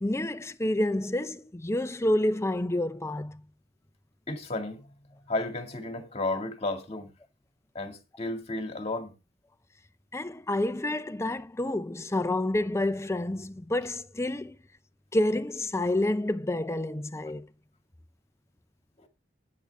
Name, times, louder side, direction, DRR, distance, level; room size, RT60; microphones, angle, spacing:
voice 1, 0.0-3.4 10.1-14.5 15.1-17.5, left 1 dB, 15° left, 0.6 m, -28 dB
voice 2, 4.3-4.8 5.3-7.1 7.7-9.1 19.0-19.1, left 2 dB, 35° left, 2.1 m, -33 dB
10.5 x 9.7 x 3.5 m
head